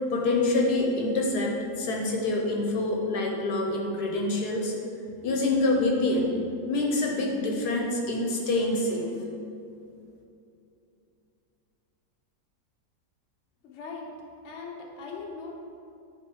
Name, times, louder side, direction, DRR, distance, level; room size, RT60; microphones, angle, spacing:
voice 1, 0.1-4.7 5.2-6.3 6.7-9.1, left 2 dB, 65° left, 0 dB, 1.3 m, -26 dB
voice 2, 13.6-14.1 14.4-15.5, left 4 dB, 50° left, -1 dB, 1.0 m, -39 dB
10.0 x 3.5 x 4.6 m, 2.6 s
omnidirectional pair, 1.9 m